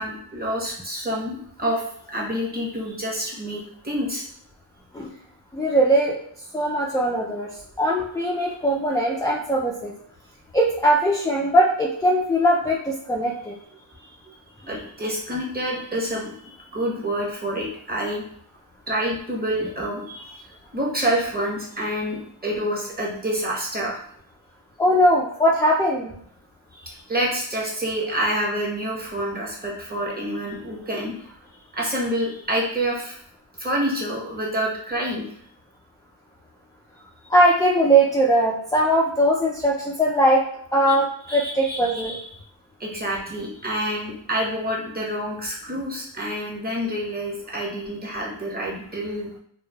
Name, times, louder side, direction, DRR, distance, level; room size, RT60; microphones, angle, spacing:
voice 1, 0.0-1.8 2.1-4.2 13.9-14.3 14.6-16.4 16.7-18.2 18.9-24.0 26.7-31.3 31.7-33.2 33.6-35.2 41.3-42.2 42.8-49.4, right 1 dB, 20° right, -4 dB, 1.0 m, -28 dB
voice 2, 5.5-6.2 6.5-7.5 7.8-9.9 10.5-13.5 24.8-26.1 37.3-40.4 40.7-42.2, right 1 dB, 10° left, -2 dB, 0.3 m, -20 dB
3.0 x 2.2 x 2.2 m, 0.64 s
cardioid pair, 45°, 49 cm